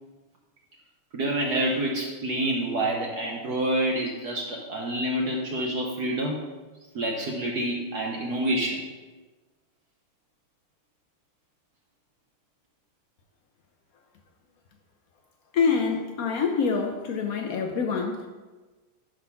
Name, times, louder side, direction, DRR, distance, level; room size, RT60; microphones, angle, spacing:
voice 1, 1.1-6.4 6.9-8.8, right 1 dB, 60° right, 0 dB, 1.2 m, -27 dB
voice 2, 15.5-18.3, left 5 dB, 85° left, 3 dB, 0.7 m, -26 dB
11.0 x 3.8 x 5.8 m, 1.3 s
omnidirectional pair, 2.4 m